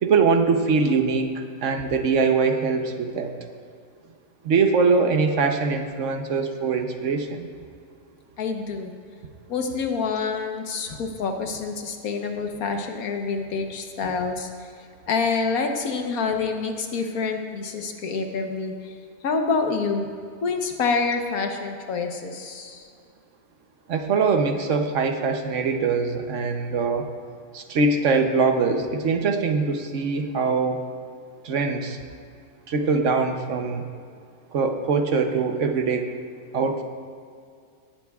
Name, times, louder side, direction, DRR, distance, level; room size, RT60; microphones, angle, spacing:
voice 1, 0.0-3.3 4.4-7.5 23.9-27.1 27.5-30.8 31.4-32.0 32.7-33.8 34.5-36.1 36.5-36.8, right 4 dB, 60° right, 6 dB, 1.1 m, -22 dB
voice 2, 8.4-8.9 9.5-14.7 15.1-18.9 19.2-20.1 20.4-22.9, left 4 dB, 75° left, 4 dB, 1.5 m, -27 dB
18.0 x 11.5 x 2.4 m, 2.3 s
omnidirectional pair, 1.5 m